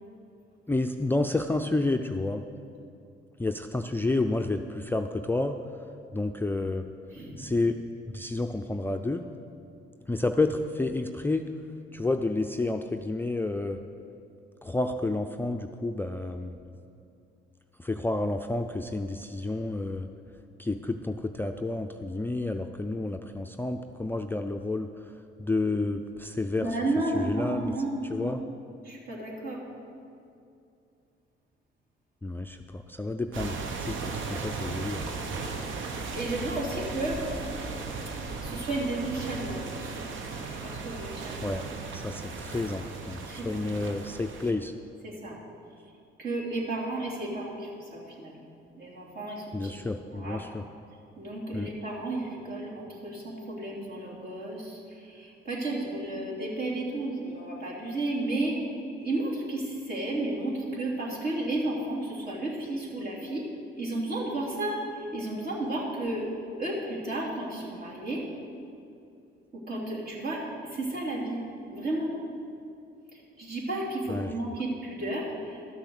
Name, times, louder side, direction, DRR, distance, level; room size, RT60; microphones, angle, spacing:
voice 1, 0.7-2.4 3.4-5.6 6.1-6.9 7.4-7.8 8.1-9.3 10.1-11.5 11.9-13.8 14.6-16.5 17.8-20.1 20.6-25.1 25.4-26.7 27.1-27.7 28.1-28.4 32.2-35.0 41.4-41.7 41.9-44.7 49.5-50.7 51.5-51.7 74.1-74.3, left 2 dB, 10° left, 5 dB, 0.4 m, -30 dB
voice 2, 7.1-7.4 26.6-28.4 28.8-29.6 36.1-37.2 38.4-40.0 40.6-41.4 43.3-43.6 45.0-45.4 46.2-48.4 48.8-50.4 51.2-58.6 59.0-63.5 63.8-66.3 66.6-68.3 69.5-72.2 73.1-75.7, right 2 dB, 50° right, -4 dB, 3.2 m, -33 dB
sound 1, 33.3-44.5, right 4 dB, 75° right, 1.0 m, -36 dB
12.5 x 6.8 x 6.5 m, 2.6 s
cardioid pair, 90°, 20 cm